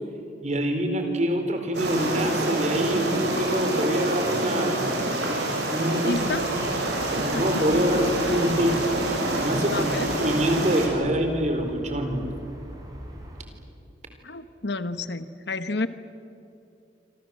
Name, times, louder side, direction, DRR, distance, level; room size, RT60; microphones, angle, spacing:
voice 1, 0.4-5.1 5.7-6.2 7.2-8.8 9.4-9.9 10.2-12.2, equal, 40° right, 5 dB, 4.3 m, -25 dB
sound 1, 1.7-10.9, right 1 dB, 70° right, 6.7 m, -27 dB
voice 2, 6.0-6.4 7.2-7.5 7.9-8.0 8.3-8.4 9.7-10.1 14.2-15.9, left 3 dB, 70° left, 12 dB, 1.2 m, -30 dB
sound 2, 6.1-13.4, equal, 20° right, 5.1 m, -42 dB
27.5 x 26.0 x 7.7 m, 2.7 s
head